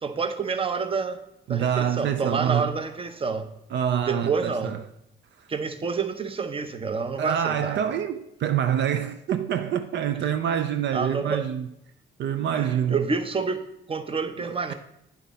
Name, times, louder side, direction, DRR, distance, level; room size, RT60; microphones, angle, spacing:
voice 1, 0.0-1.2 1.5-3.5 4.0-4.8 5.5-7.8 10.9-11.5 12.5-14.7, right 5 dB, 25° right, 0.8 m, -28 dB
voice 2, 1.5-2.7 3.7-4.8 5.4-5.5 7.2-11.7 12.2-13.0 14.4-14.7, right 9 dB, 65° right, 0.5 m, -26 dB
9.1 x 5.7 x 4.1 m
cardioid pair, 90°, 20 cm